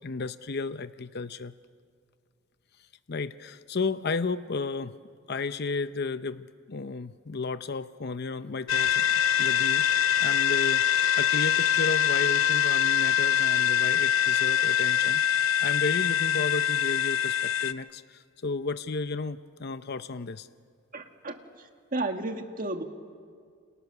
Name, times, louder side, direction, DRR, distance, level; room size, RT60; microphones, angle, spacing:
voice 1, 0.0-1.5 3.1-4.9 5.3-9.0 9.4-20.5, left 4 dB, 50° left, 12 dB, 0.7 m, -33 dB
sound 1, 8.7-17.7, left 10 dB, 90° left, 0.8 m, -24 dB
voice 2, 20.9-21.3 21.9-22.8, right 2 dB, 40° right, 5 dB, 1.9 m, -32 dB
29.5 x 28.5 x 6.9 m, 2.1 s
head